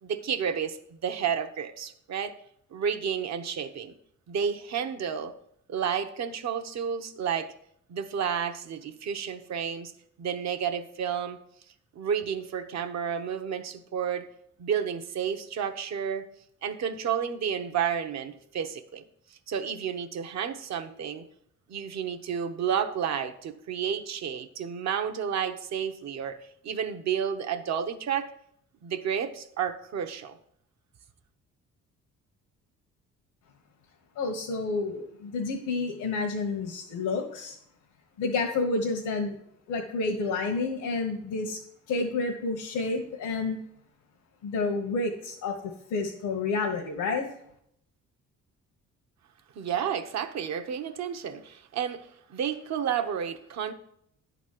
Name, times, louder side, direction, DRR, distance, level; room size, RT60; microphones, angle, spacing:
voice 1, 0.0-2.3 2.7-3.9 4.3-5.3 5.7-7.5 7.9-9.9 10.2-11.4 11.9-14.3 14.6-16.2 16.6-19.0 19.5-21.2 21.7-26.4 26.6-28.3 28.8-30.3 49.5-53.7, right 8 dB, 60° right, 7 dB, 1.0 m, -31 dB
voice 2, 34.1-37.6 38.2-39.4 39.7-41.6 41.9-43.6 44.4-47.3, left 3 dB, 90° left, -1 dB, 1.4 m, -29 dB
11.0 x 4.1 x 7.5 m, 0.72 s
cardioid pair, 90°, 30 cm